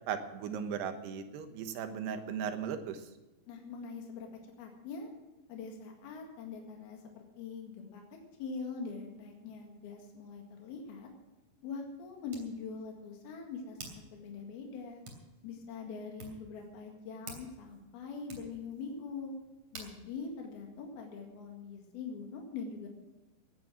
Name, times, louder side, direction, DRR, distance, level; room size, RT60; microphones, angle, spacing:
voice 1, 0.1-3.1, right 7 dB, 90° right, 7 dB, 3.3 m, -37 dB
voice 2, 3.5-4.3 4.6-5.1 5.5-8.0 8.4-11.1 11.6-15.0 15.4-19.3 19.7-22.9, left 5 dB, 75° left, 1 dB, 3.9 m, -43 dB
Hands, 10.7-21.5, right 3 dB, 40° right, 3.8 m, -54 dB
18.0 x 9.4 x 6.2 m, 1.0 s
omnidirectional pair, 4.5 m